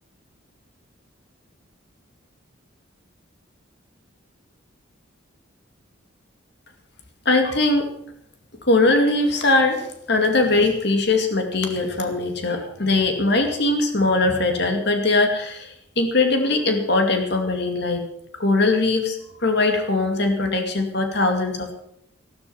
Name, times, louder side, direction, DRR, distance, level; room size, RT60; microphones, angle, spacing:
voice 1, 7.3-7.9 8.7-18.1 18.3-21.7, left 2 dB, 55° left, 4 dB, 2.3 m, -21 dB
14.0 x 12.5 x 5.8 m, 0.71 s
head